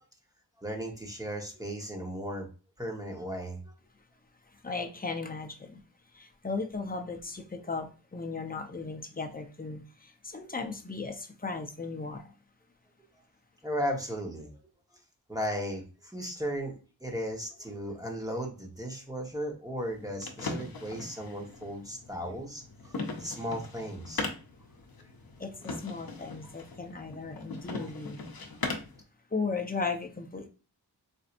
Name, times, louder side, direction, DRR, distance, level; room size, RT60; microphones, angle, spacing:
voice 1, 0.6-2.5 2.8-3.7 13.6-14.5 15.3-24.3 27.8-27.9, equal, 10° right, 1 dB, 1.1 m, -36 dB
voice 2, 4.6-5.8 6.1-12.3 25.4-28.2 29.3-30.5, left 4 dB, 20° left, 4 dB, 0.7 m, -36 dB
sound 1, 19.8-29.0, left 3 dB, 60° left, 0.7 m, -40 dB
4.4 x 2.6 x 2.5 m, 0.34 s
wide cardioid pair, 65°, 40 cm